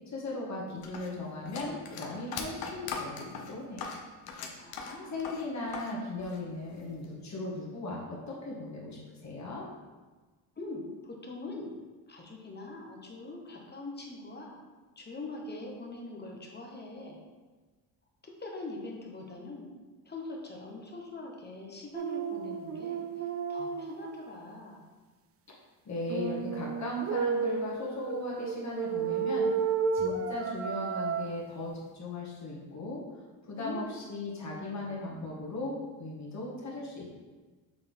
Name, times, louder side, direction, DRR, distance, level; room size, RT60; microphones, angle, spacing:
voice 1, 0.1-3.9 5.1-8.0 8.3-9.6 25.9-29.5 29.9-33.0 33.5-37.1, left 2 dB, 40° left, -4 dB, 1.9 m, -37 dB
sound 1, 0.8-5.9 6.2-7.0, left 5 dB, 55° left, 0.9 m, -40 dB
voice 2, 4.6-5.2 10.6-11.7 12.1-14.6 15.0-17.2 18.4-19.7 20.0-24.8 33.5-33.8, left 2 dB, 25° left, 0 dB, 1.2 m, -42 dB
sound 2, 21.9-24.3 26.1-31.3, right 6 dB, 35° right, 0.4 m, -32 dB
7.0 x 3.7 x 3.5 m, 1.3 s
cardioid pair, 105°, 43 cm